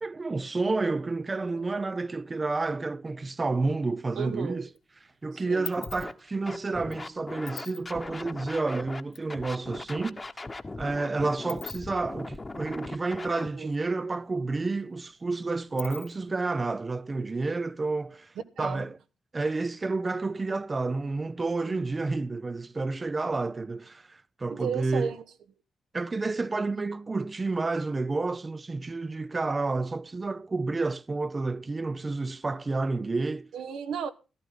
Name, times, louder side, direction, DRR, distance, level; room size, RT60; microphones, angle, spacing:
voice 1, 0.0-4.7 5.0-10.2 10.8-19.0 19.3-25.1 25.9-33.5, right 3 dB, 35° right, 0.6 m, -30 dB
sound 1, 4.0-4.8 5.1-9.3 9.6-9.7 9.9-13.8 14.0-14.1 14.5-16.4, left 7 dB, 70° left, 2.1 m, -45 dB
voice 2, 4.2-4.7 5.3-5.7 13.6-13.7 18.6-18.8 21.6-21.9 24.5-25.2 33.5-34.1, right 7 dB, 80° right, 1.1 m, -34 dB
Scratching (performance technique), 5.8-6.1 6.5-9.0 9.3-13.5, left 2 dB, 30° left, 1.2 m, -39 dB
14.5 x 12.5 x 3.8 m
supercardioid pair, 50°, 0 cm